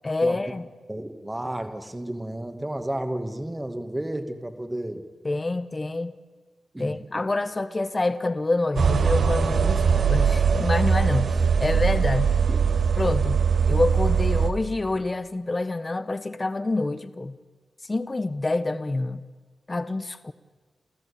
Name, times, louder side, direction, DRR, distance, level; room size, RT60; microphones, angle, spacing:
voice 1, 0.0-0.7 5.2-6.1 6.8-12.3 13.0-17.4 17.8-19.2 19.7-20.3, left 2 dB, 30° left, 13 dB, 1.1 m, -27 dB
voice 2, 0.9-5.0 6.7-7.1 12.5-12.6, right 1 dB, 15° right, 7 dB, 2.1 m, -32 dB
sound 1, 8.8-14.5, right 6 dB, 65° right, 1.8 m, -21 dB
29.0 x 14.0 x 8.6 m, 1.4 s
cardioid pair, 80°, 0 cm